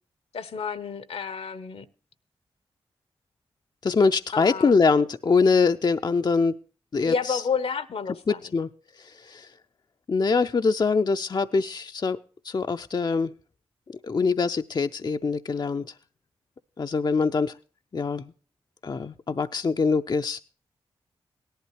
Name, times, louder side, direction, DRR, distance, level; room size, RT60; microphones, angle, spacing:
voice 1, 0.3-1.9 4.3-4.7 7.1-8.4, left 6 dB, 70° left, 0.9 m, -30 dB
voice 2, 3.8-6.6 6.9-7.4 8.3-8.7 9.0-9.5 10.1-12.2 12.4-13.3 13.9-15.9 16.8-17.6 17.9-18.3 18.8-20.4, left 4 dB, 40° left, 0.5 m, -24 dB
17.5 x 11.5 x 3.0 m
supercardioid pair, 40°, 11 cm